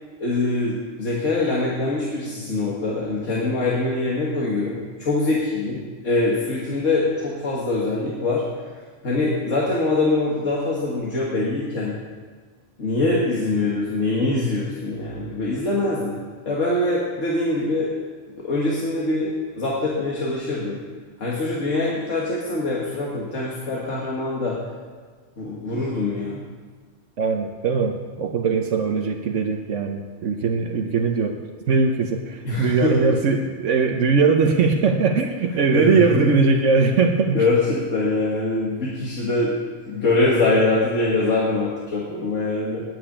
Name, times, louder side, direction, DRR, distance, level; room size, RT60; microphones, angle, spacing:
voice 1, 0.2-8.5 9.0-12.0 12.8-16.2 16.5-17.9 18.4-20.8 21.2-24.6 25.4-26.4 32.4-33.0 35.7-36.4 37.3-39.5 39.8-42.8, left 2 dB, 80° left, -5 dB, 2.1 m, -23 dB
voice 2, 27.2-37.4, right 4 dB, 75° right, 3 dB, 1.2 m, -20 dB
9.4 x 9.0 x 8.7 m, 1.5 s
omnidirectional pair, 1.3 m